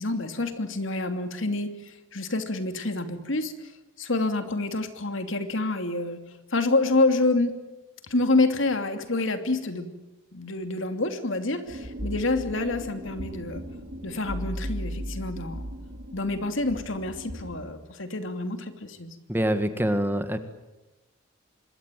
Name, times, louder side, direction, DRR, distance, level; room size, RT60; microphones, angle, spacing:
voice 1, 0.0-3.5 4.0-6.2 6.5-7.5 8.1-9.9 10.3-13.6 14.0-15.7 16.1-19.1, left 2 dB, 75° left, 7 dB, 2.8 m, -27 dB
sound 1, 11.7-17.6, equal, 60° right, 5.6 m, -36 dB
voice 2, 19.3-20.4, equal, 10° right, 8 dB, 1.7 m, -25 dB
26.0 x 22.0 x 9.2 m, 1.0 s
head